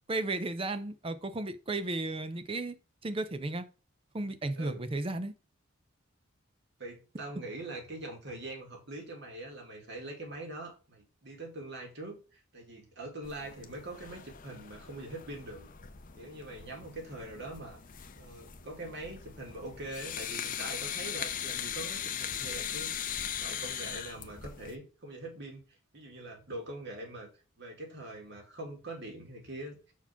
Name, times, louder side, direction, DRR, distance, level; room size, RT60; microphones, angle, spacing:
voice 1, 0.1-2.8 3.0-3.7 4.1-5.3, right 2 dB, 25° right, 0.5 m, -34 dB
voice 2, 6.8-15.7 16.2-17.8 18.2-27.3 27.6-29.8, right 2 dB, 55° right, 2.2 m, -43 dB
sound 1, 13.2-24.7, left 9 dB, 40° left, 0.6 m, -40 dB
5.8 x 4.6 x 5.7 m
head